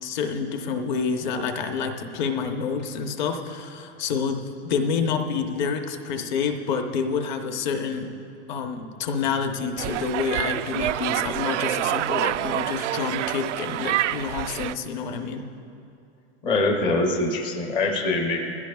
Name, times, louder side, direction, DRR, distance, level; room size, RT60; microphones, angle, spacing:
voice 1, 0.0-8.1 8.5-15.4, left 5 dB, 40° left, 5 dB, 0.9 m, -28 dB
sound 1, 9.8-14.7, right 14 dB, 80° right, 0.5 m, -27 dB
voice 2, 16.4-18.5, left 2 dB, 15° left, 1 dB, 0.6 m, -23 dB
21.0 x 15.5 x 2.3 m, 2.6 s
supercardioid pair, 170°, 35 cm